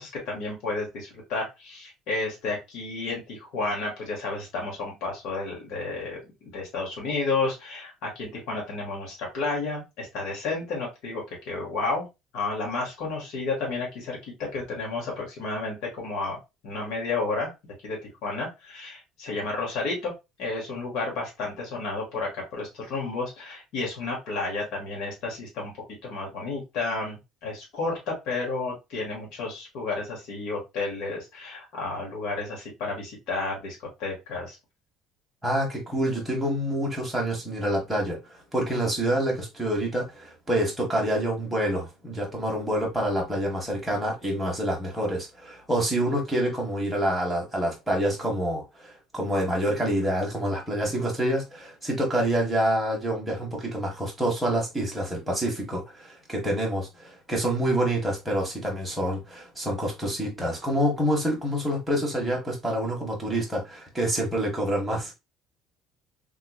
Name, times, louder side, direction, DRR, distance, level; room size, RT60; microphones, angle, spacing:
voice 1, 0.0-12.1 12.3-16.4 16.6-17.5 17.8-20.1 20.4-25.7 26.0-34.6, left 3 dB, 60° left, 1.5 m, -31 dB
voice 2, 35.4-38.2 38.5-65.1, right 1 dB, 5° right, 1.2 m, -27 dB
3.5 x 3.0 x 2.3 m
cardioid pair, 160°, 0 cm